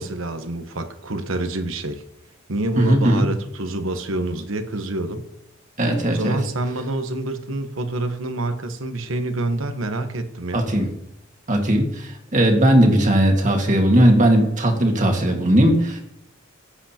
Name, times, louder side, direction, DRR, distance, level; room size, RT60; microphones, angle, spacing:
voice 1, 0.0-2.0 2.5-5.3 6.1-10.8, right 2 dB, 80° right, 8 dB, 1.0 m, -27 dB
voice 2, 2.8-3.3 5.8-6.4 10.5-10.9 11.5-16.0, right 1 dB, 40° right, 2 dB, 1.7 m, -18 dB
14.5 x 7.9 x 2.9 m, 0.77 s
head